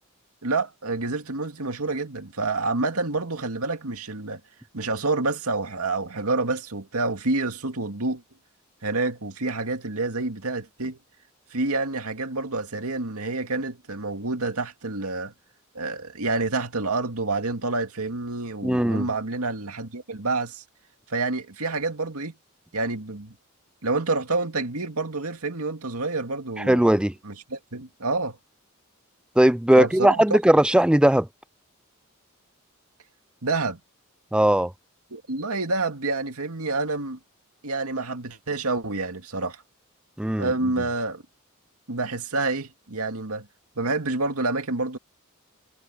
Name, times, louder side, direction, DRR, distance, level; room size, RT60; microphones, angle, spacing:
voice 1, 0.4-4.4 4.7-8.2 8.8-11.0 11.5-15.3 15.7-20.6 21.1-22.4 22.7-23.4 23.8-26.9 27.2-28.4 29.8-30.4 33.4-33.8 35.1-37.2 37.6-39.6 40.4-41.2 41.9-43.5 43.8-45.0, right 3 dB, 80° right, 2.3 m, -28 dB
voice 2, 18.6-19.1 26.6-27.1 29.4-31.3 34.3-34.7 40.2-40.5, right 1 dB, 5° right, 0.4 m, -18 dB
head